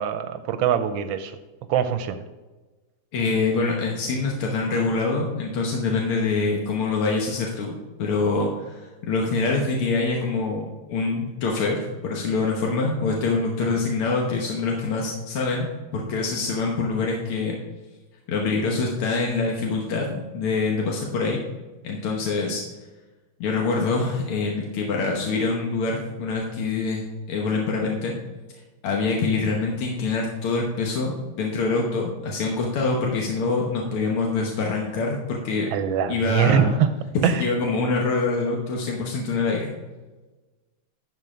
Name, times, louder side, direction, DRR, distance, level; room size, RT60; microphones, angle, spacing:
voice 1, 0.0-1.4 1.7-2.2 13.6-13.7 35.7-36.9 37.2-37.4, right 8 dB, 75° right, 10 dB, 1.3 m, -23 dB
voice 2, 3.1-7.7 8.0-15.7 15.9-17.6 18.3-21.4 21.8-22.6 23.4-28.2 28.8-35.7 36.1-36.7 37.2-39.7, left 3 dB, 90° left, -1 dB, 2.0 m, -25 dB
11.0 x 4.6 x 4.8 m, 1.2 s
omnidirectional pair, 2.3 m